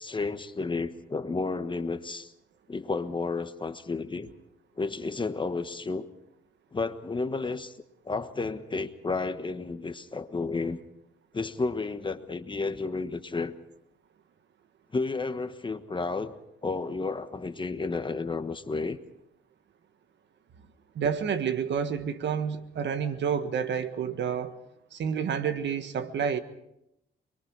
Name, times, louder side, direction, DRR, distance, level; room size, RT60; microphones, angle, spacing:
voice 1, 0.0-2.3 2.7-4.3 4.8-6.1 6.7-7.7 8.0-10.8 11.3-13.5 14.9-16.3 16.6-19.0, left 3 dB, 25° left, 1.3 m, -32 dB
voice 2, 20.9-24.6 24.9-26.4, right 7 dB, 65° right, 1.5 m, -29 dB
28.0 x 22.0 x 4.7 m
cardioid pair, 90°, 20 cm